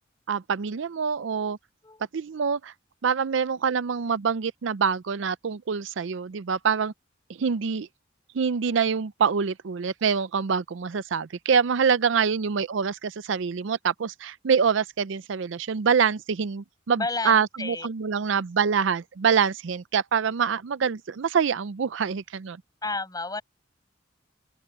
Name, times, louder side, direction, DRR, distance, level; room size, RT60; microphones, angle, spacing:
voice 1, 0.3-1.6 2.1-2.7 3.0-6.9 7.4-7.9 8.3-22.6, right 6 dB, 75° right, 0.5 m, -25 dB
voice 2, 17.0-17.9 22.8-23.4, left 3 dB, 20° left, 6.1 m, -31 dB
open air
head